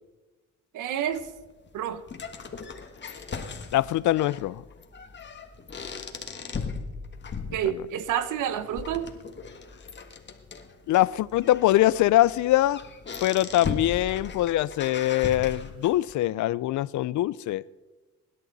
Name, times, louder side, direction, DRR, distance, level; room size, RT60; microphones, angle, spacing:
voice 1, 0.7-1.3 1.7-2.0 7.5-9.1, right 10 dB, 85° right, 12 dB, 1.1 m, -29 dB
sound 1, 1.1-16.1, left 5 dB, 35° left, 1.7 m, -38 dB
voice 2, 3.7-4.6 7.6-7.8 10.9-12.8 13.2-17.6, left 15 dB, 70° left, 20 dB, 0.5 m, -23 dB
24.0 x 11.5 x 4.1 m, 1.2 s
cardioid pair, 90°, 30 cm